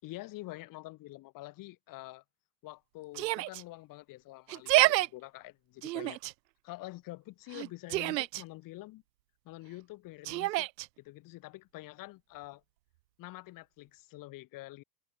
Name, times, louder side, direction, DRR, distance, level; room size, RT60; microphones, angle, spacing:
voice 1, 0.0-2.2 2.6-6.2 6.6-9.0 9.5-10.7 11.0-12.6 13.2-14.8, left 18 dB, 40° left, 6.9 m, -46 dB
Yell, 3.1-3.6 4.5-5.1 5.8-6.3 7.5-8.4 10.2-10.9, right 19 dB, 80° right, 0.8 m, -28 dB
supercardioid pair, 140°, 50 cm